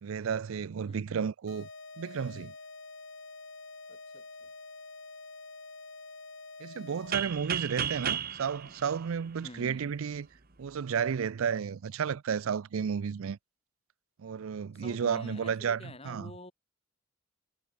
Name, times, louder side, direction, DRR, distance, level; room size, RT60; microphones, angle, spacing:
voice 1, 0.0-1.7 2.0-2.5 6.6-10.3 10.6-13.4 14.2-16.3, right 7 dB, 90° right, 0.4 m, -32 dB
voice 2, 0.9-1.3 3.9-4.5 7.6-8.1 8.6-8.7 9.4-9.9 14.7-16.5, left 1 dB, 30° left, 6.4 m, -48 dB
sound 1, 1.5-7.4, left 3 dB, 65° left, 7.7 m, -47 dB
sound 2, 7.1-9.9, right 8 dB, 45° right, 1.3 m, -34 dB
head